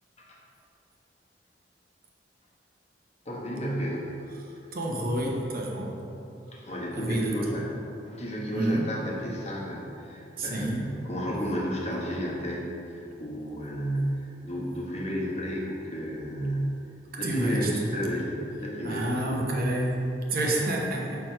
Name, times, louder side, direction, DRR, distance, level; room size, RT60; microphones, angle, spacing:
voice 1, 3.2-4.2 6.5-16.8 17.2-19.7, equal, 35° left, -3 dB, 1.2 m, -32 dB
voice 2, 4.4-5.9 7.0-7.3 8.5-8.8 10.4-10.9 17.2-17.9 18.8-21.2, right 1 dB, 55° right, -1 dB, 0.9 m, -29 dB
6.2 x 4.6 x 4.5 m, 2.8 s
head